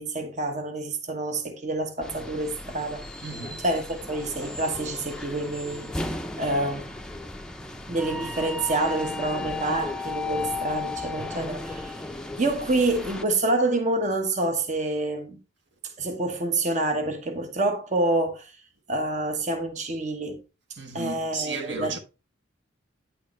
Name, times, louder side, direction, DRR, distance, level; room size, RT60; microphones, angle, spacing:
voice 1, 0.0-3.0 3.6-5.9 6.4-6.9 7.9-12.0 12.4-15.4 16.0-18.5 18.9-20.4 20.9-22.0, right 2 dB, 35° right, 1.2 m, -27 dB
sound 1, 2.0-13.2, left 2 dB, 5° left, 0.6 m, -35 dB
voice 2, 3.2-3.6 20.8-22.0, right 4 dB, 60° right, 1.3 m, -34 dB
9.5 x 6.6 x 3.1 m
head